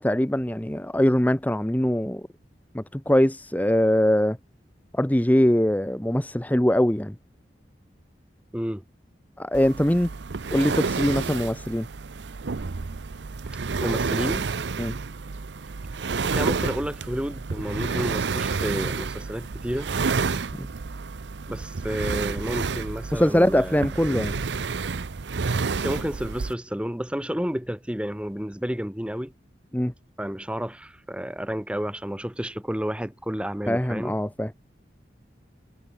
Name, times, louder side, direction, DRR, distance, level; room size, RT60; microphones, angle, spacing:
voice 1, 0.0-2.3 2.7-4.4 4.9-7.1 9.4-10.1 10.5-11.9 14.8-14.9 20.6-20.7 23.1-24.4 29.7-29.9 33.7-34.5, equal, 10° left, 0.8 m, -22 dB
voice 2, 8.5-8.8 13.8-14.5 16.2-19.9 21.5-24.3 25.8-29.3 30.2-34.2, equal, 5° right, 1.2 m, -31 dB
sound 1, 9.5-26.5, right 4 dB, 80° right, 0.7 m, -30 dB
head